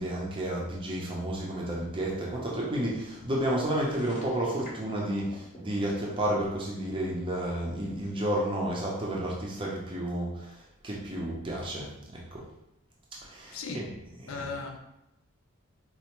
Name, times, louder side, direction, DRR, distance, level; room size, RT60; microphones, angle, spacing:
voice 1, 0.0-12.5 13.2-13.9 14.2-14.4, right 1 dB, 20° right, -4 dB, 0.5 m, -31 dB
sound 1, 3.8-5.9, left 1 dB, 35° left, 0.7 m, -48 dB
voice 2, 13.5-13.9 14.3-14.8, left 4 dB, 65° left, 4 dB, 0.5 m, -36 dB
4.3 x 2.4 x 2.9 m, 0.87 s
head